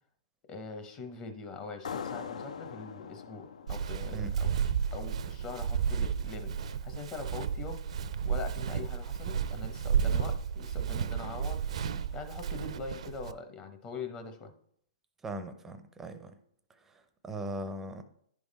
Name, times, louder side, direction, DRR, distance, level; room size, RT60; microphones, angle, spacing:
voice 1, 0.5-7.8 8.2-11.6 12.1-14.5, left 4 dB, 25° left, 0.8 m, -43 dB
sound 1, 1.8-5.2, left 7 dB, 80° left, 0.4 m, -42 dB
Walk footsteps, 3.7-13.3, right 7 dB, 65° right, 0.4 m, -32 dB
voice 2, 15.2-16.3 16.8-18.0, right 1 dB, 10° right, 0.5 m, -40 dB
10.5 x 3.6 x 4.1 m
hypercardioid pair, 145°, 4 cm